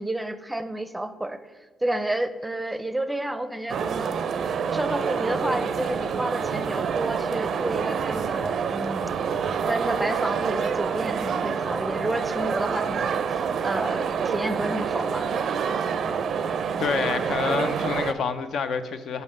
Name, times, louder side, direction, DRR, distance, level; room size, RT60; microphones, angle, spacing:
voice 1, 0.0-1.4 1.8-4.1 4.7-9.1 9.7-15.3, right 1 dB, 10° right, 11 dB, 0.5 m, -30 dB
sound 1, 3.7-18.1, right 6 dB, 60° right, 0.4 m, -27 dB
voice 2, 16.8-19.2, left 5 dB, 65° left, 10 dB, 0.5 m, -27 dB
5.5 x 5.4 x 6.4 m, 1.4 s
cardioid pair, 90°, 0 cm